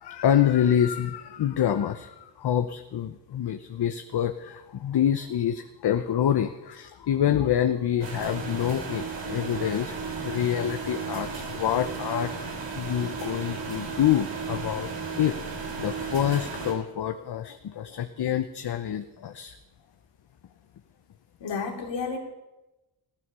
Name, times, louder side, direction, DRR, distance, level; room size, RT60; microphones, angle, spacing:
voice 1, 0.0-10.0 10.2-14.9 15.1-15.4 15.8-19.6, left 10 dB, 65° left, 9 dB, 0.9 m, -26 dB
sound 1, 8.0-16.7, right 5 dB, 80° right, 4.0 m, -34 dB
voice 2, 21.4-22.2, left 5 dB, 90° left, 2 dB, 3.0 m, -31 dB
15.5 x 13.5 x 6.8 m, 1.0 s
wide cardioid pair, 115°, 43 cm